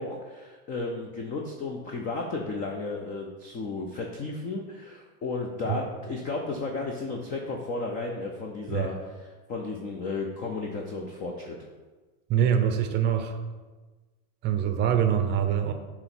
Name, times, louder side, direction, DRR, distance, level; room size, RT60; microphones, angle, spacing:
voice 1, 0.0-11.6, left 3 dB, 20° left, 1 dB, 0.5 m, -33 dB
voice 2, 12.3-13.4 14.4-15.7, right 9 dB, 25° right, 6 dB, 0.6 m, -24 dB
7.6 x 3.0 x 5.9 m, 1.3 s
supercardioid pair, 135°, 44 cm